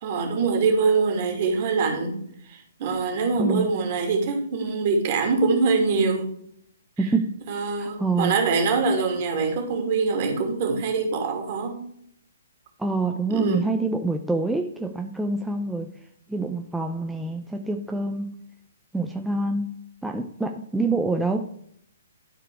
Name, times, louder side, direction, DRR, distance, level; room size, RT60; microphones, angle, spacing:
voice 1, 0.0-2.2 2.5-6.3 7.5-11.8 13.3-13.7, right 4 dB, 45° right, 3 dB, 2.7 m, -24 dB
voice 2, 7.0-7.4 7.8-8.4 12.8-15.9 16.3-18.3 18.9-19.7 20.0-21.5, right 3 dB, 5° right, 3 dB, 0.6 m, -26 dB
12.0 x 4.8 x 4.7 m, 0.68 s
figure-of-eight pair, 130°, 0 cm